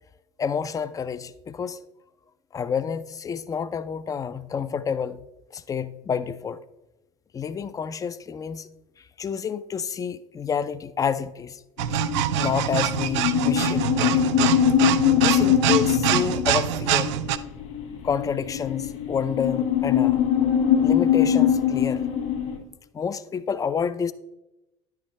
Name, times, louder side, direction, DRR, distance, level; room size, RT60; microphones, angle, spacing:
voice 1, 0.4-1.8 2.5-5.2 5.5-6.6 7.3-8.7 9.2-11.6 12.4-14.3 15.1-17.1 18.0-20.2 20.7-22.1 22.9-24.1, left 7 dB, 20° left, 0.4 m, -29 dB
sound 1, 11.8-22.6, left 9 dB, 60° left, 2.0 m, -23 dB
sound 2, 11.8-17.4, right 13 dB, 70° right, 0.4 m, -25 dB
10.0 x 5.7 x 3.2 m
hypercardioid pair, 65°, 16 cm